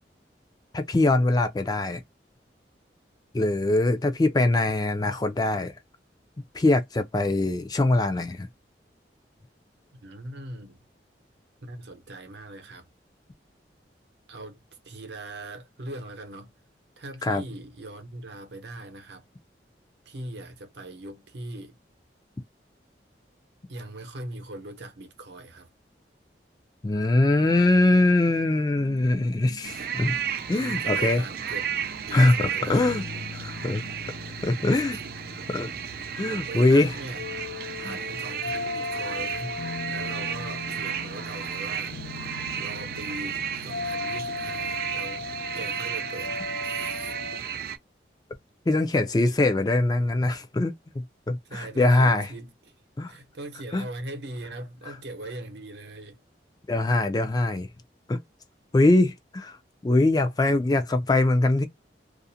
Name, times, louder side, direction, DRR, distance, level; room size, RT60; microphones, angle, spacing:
voice 1, 0.7-2.0 3.3-5.7 6.5-8.5 17.2-17.4 26.8-30.2 30.5-31.2 32.1-33.0 33.3-33.8 34.4-35.0 35.5-35.7 36.2-36.9 37.8-38.0 48.7-52.3 53.0-53.1 53.7-53.9 56.7-57.7 58.1-58.2 58.7-59.6 59.8-61.7, left 2 dB, 20° left, 0.3 m, -22 dB
voice 2, 10.0-10.8 11.6-12.9 14.3-14.6 14.8-16.5 17.0-19.3 20.1-21.8 23.7-25.7 30.5-33.2 36.3-37.3 37.8-45.2 45.5-46.3 46.6-47.1 51.5-52.7 53.1-56.2, right 1 dB, 75° right, 0.8 m, -40 dB
sound 1, 28.7-34.0, right 3 dB, 60° left, 0.8 m, -49 dB
sound 2, 29.6-47.8, right 8 dB, 55° right, 0.3 m, -33 dB
sound 3, 32.7-47.4, left 4 dB, 85° left, 0.4 m, -37 dB
2.5 x 2.0 x 2.6 m
head